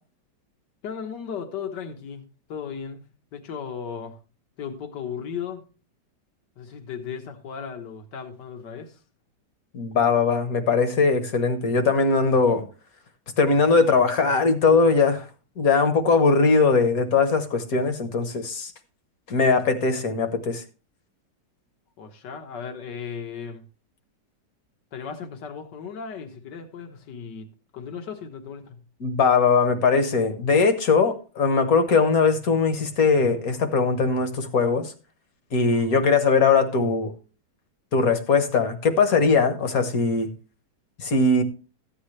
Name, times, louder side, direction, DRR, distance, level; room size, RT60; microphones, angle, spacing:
voice 1, 0.8-2.2 2.5-3.1 3.3-4.2 4.6-5.6 6.6-9.0 22.0-23.6 24.9-27.5 27.7-28.8, left 7 dB, 75° left, 1.9 m, -36 dB
voice 2, 9.7-12.6 13.4-15.2 15.6-18.7 19.3-20.6 29.0-34.9 35.5-37.1 37.9-40.3 41.0-41.4, left 4 dB, 55° left, 1.6 m, -20 dB
14.0 x 8.8 x 3.2 m
omnidirectional pair, 1.9 m